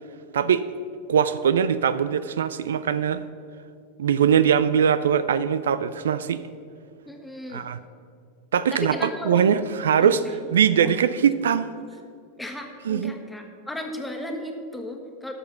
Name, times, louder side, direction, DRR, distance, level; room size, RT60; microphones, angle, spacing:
voice 1, 1.1-3.2 4.0-6.4 7.5-7.8 8.5-10.2 10.5-11.7 12.8-13.2, right 8 dB, 75° right, 14 dB, 0.4 m, -21 dB
voice 2, 7.1-7.7 8.7-9.5 10.0-10.1 10.8-10.9 12.4-15.3, left 1 dB, 5° left, 3 dB, 1.6 m, -35 dB
12.5 x 6.7 x 5.7 m, 2.3 s
hypercardioid pair, 90°, 0 cm